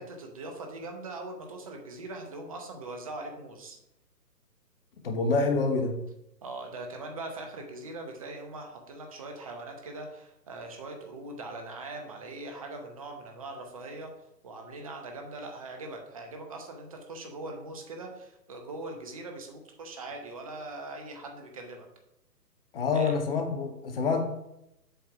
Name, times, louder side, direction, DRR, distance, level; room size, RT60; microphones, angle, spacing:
voice 1, 0.0-3.8 6.4-14.1 14.4-21.9 22.9-23.1, right 2 dB, 20° right, 3 dB, 0.8 m, -41 dB
voice 2, 5.0-6.0 22.7-24.2, left 4 dB, 35° left, 4 dB, 1.2 m, -26 dB
7.8 x 3.3 x 5.7 m, 0.83 s
figure-of-eight pair, 145°, 49 cm